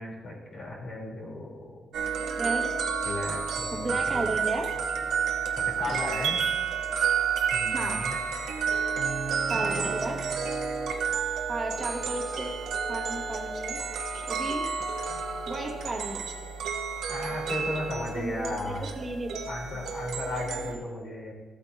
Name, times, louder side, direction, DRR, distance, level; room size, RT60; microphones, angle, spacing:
voice 1, 0.0-1.7 3.0-3.9 5.6-6.4 7.5-8.2 9.5-9.9 17.1-18.9 19.5-21.3, left 2 dB, 50° left, -2 dB, 3.1 m, -35 dB
sound 1, 1.9-20.7, right 6 dB, 70° right, 0.9 m, -30 dB
voice 2, 2.3-3.1 3.7-4.7 5.9-6.0 7.7-8.0 9.5-10.2 11.5-12.6 12.9-13.8 14.3-14.7 15.4-16.2 18.1-19.4, right 2 dB, 20° right, -2 dB, 1.6 m, -34 dB
14.5 x 8.3 x 2.6 m, 1.4 s
cardioid pair, 150°, 0 cm